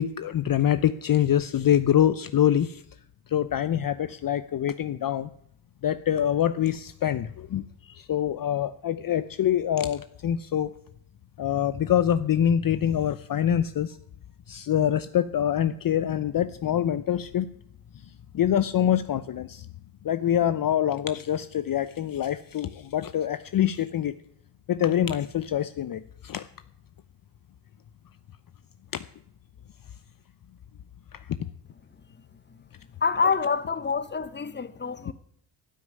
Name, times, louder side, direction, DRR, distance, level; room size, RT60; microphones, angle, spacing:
voice 1, 0.0-2.8 3.3-5.3 5.8-10.7 11.4-14.0 14.5-17.5 18.3-19.7 20.0-24.2 24.7-26.5 33.2-33.3, left 10 dB, 45° left, 0.7 m, -25 dB
voice 2, 33.0-35.1, left 5 dB, 25° left, 1.1 m, -26 dB
12.5 x 6.3 x 9.5 m
supercardioid pair, 50°, 46 cm